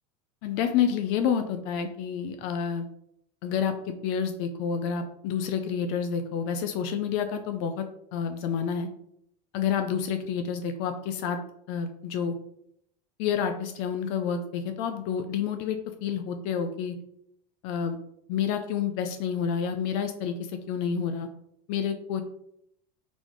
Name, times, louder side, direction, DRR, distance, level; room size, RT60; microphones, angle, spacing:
voice 1, 0.4-2.9 3.4-7.8 8.1-8.9 9.5-11.4 11.7-12.3 13.2-16.9 17.6-18.0 18.3-21.3 21.7-22.2, left 7 dB, 50° left, 7 dB, 0.4 m, -29 dB
4.0 x 3.7 x 3.0 m, 0.75 s
supercardioid pair, 155°, 21 cm